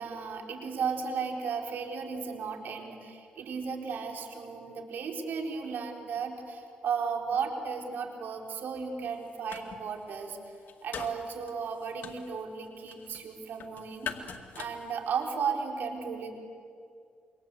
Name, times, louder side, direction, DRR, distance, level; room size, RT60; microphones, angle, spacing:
voice 1, 0.0-10.4 10.8-14.1 14.5-16.3, right 6 dB, 70° right, 3 dB, 4.0 m, -35 dB
sound 1, 9.0-9.8 10.1-15.5, left 7 dB, 65° left, 2.2 m, -43 dB
27.5 x 24.0 x 8.3 m, 2.4 s
cardioid pair, 80°, 3 cm